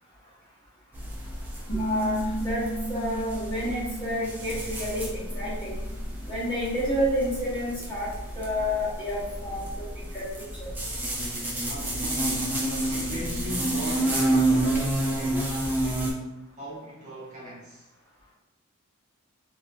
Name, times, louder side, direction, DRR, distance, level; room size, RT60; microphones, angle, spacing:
sound 1, 0.9-16.1, right 1 dB, 10° right, 0.5 m, -30 dB
sound 2, 1.7-7.1, right 1 dB, 75° left, 1.1 m, -35 dB
voice 1, 1.8-2.6 2.9-5.8 6.3-10.3 10.6-10.7 11.5-11.7, equal, 20° left, -9 dB, 1.3 m, -30 dB
Piano, 1.9-10.4, equal, 55° left, 0.4 m, -51 dB
voice 2, 9.2-9.8 11.1-17.9, equal, 35° right, -7 dB, 0.8 m, -40 dB
3.0 x 2.9 x 2.5 m, 0.99 s
head